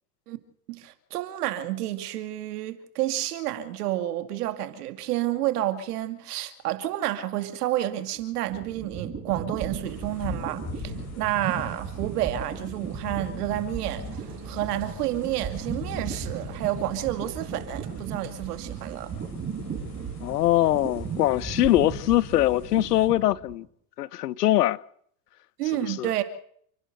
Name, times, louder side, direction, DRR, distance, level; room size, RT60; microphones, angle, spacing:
voice 1, 0.7-14.0 14.4-19.1 25.6-26.2, right 13 dB, 80° right, 2.5 m, -30 dB
sound 1, 8.2-23.6, right 6 dB, 30° right, 5.7 m, -37 dB
sound 2, 9.8-23.1, left 4 dB, 35° left, 7.4 m, -42 dB
Engine, 13.1-20.6, right 12 dB, 55° right, 6.2 m, -50 dB
voice 2, 20.2-23.6 24.0-24.8 25.7-26.1, left 14 dB, 90° left, 1.0 m, -22 dB
29.0 x 11.0 x 8.0 m
hypercardioid pair, 105°, 46 cm